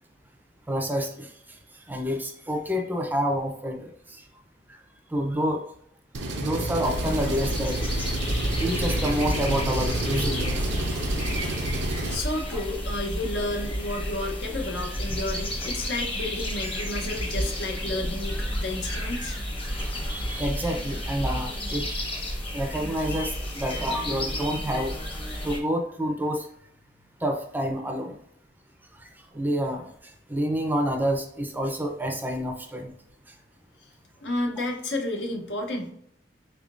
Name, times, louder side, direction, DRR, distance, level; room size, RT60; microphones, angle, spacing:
voice 1, 0.7-4.3 4.7-4.8 5.1-5.6 6.4-7.8 8.6-11.2 12.5-12.6 20.1-22.1 22.5-24.9 25.4-26.5 27.2-28.2 28.9-32.9 33.3-33.4, equal, 10° right, 3 dB, 0.5 m, -29 dB
Engine, 6.1-12.2, right 2 dB, 75° right, 0.6 m, -30 dB
sound 1, 6.8-25.6, equal, 30° left, 0.9 m, -31 dB
voice 2, 12.1-19.3 34.2-35.9, left 2 dB, 75° left, 2 dB, 0.8 m, -31 dB
4.3 x 3.5 x 2.5 m, 0.68 s
head